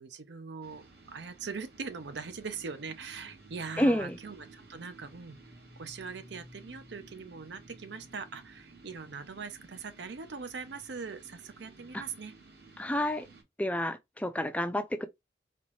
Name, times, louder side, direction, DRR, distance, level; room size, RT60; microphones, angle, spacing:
voice 1, 0.0-5.4 5.8-12.3, right 5 dB, 85° right, 0.7 m, -41 dB
sound 1, 0.6-13.4, right 2 dB, 65° right, 1.4 m, -54 dB
voice 2, 3.8-4.2 11.9-12.0 12.8-13.3 13.6-15.1, left 1 dB, 10° left, 0.4 m, -29 dB
4.2 x 3.1 x 3.1 m
head